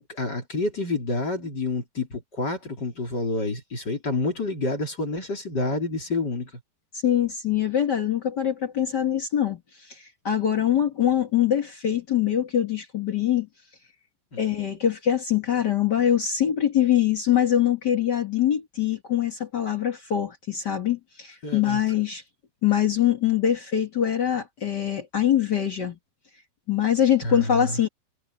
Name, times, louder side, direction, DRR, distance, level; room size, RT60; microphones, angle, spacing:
voice 1, 0.0-6.5 14.3-14.5 21.4-21.8 27.2-27.8, left 2 dB, 25° left, 3.2 m, -28 dB
voice 2, 6.9-13.5 14.4-22.2 22.6-26.0 26.7-27.9, left 10 dB, 90° left, 0.9 m, -23 dB
omnidirectional pair, 4.8 m